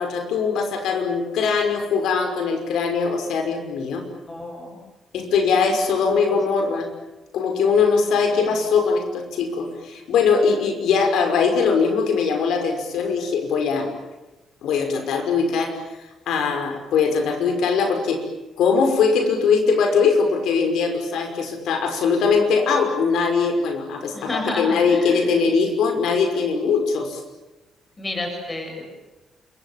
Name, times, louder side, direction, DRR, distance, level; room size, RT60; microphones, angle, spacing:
voice 1, 0.0-4.0 5.1-6.9 7.3-13.9 14.6-15.8 16.3-18.2 18.6-27.2, left 5 dB, 75° left, 5 dB, 5.7 m, -21 dB
voice 2, 4.3-4.8 5.6-5.8 6.3-6.4 8.3-8.6 24.1-25.3 28.0-28.8, left 2 dB, 15° left, 3 dB, 7.4 m, -31 dB
29.5 x 26.0 x 7.5 m, 1.0 s
cardioid pair, 180°, 0 cm